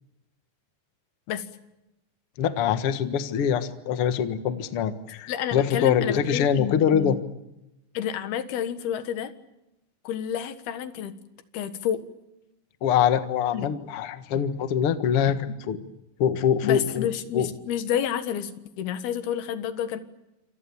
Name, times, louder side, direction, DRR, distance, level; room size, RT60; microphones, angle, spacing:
voice 1, 2.4-7.2 12.8-15.8 16.2-17.1 17.3-17.5, left 8 dB, 50° left, 9 dB, 1.8 m, -24 dB
voice 2, 5.3-7.1 7.9-9.3 10.0-11.1 11.5-12.0 13.5-13.8 16.6-18.5 18.8-20.0, left 9 dB, 75° left, 10 dB, 3.5 m, -29 dB
27.5 x 27.0 x 7.2 m, 0.91 s
omnidirectional pair, 4.5 m